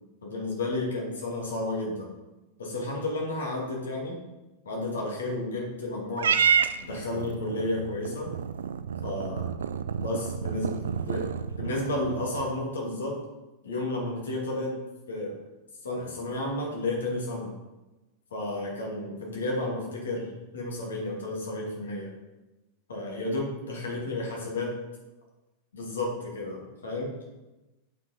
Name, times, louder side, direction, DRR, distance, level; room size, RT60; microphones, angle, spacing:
voice 1, 0.2-2.1 2.6-4.2 4.6-6.4 6.8-8.3 9.0-9.5 10.0-13.2 13.6-14.8 15.1-15.4 15.8-17.5 18.3-22.1 22.9-24.7 25.7-27.1, left 2 dB, 65° left, -2 dB, 2.7 m, -32 dB
Purr / Meow, 6.2-12.7, right 7 dB, 65° right, 0.4 m, -29 dB
8.5 x 6.0 x 4.4 m, 1.1 s
figure-of-eight pair, 90°, 0 cm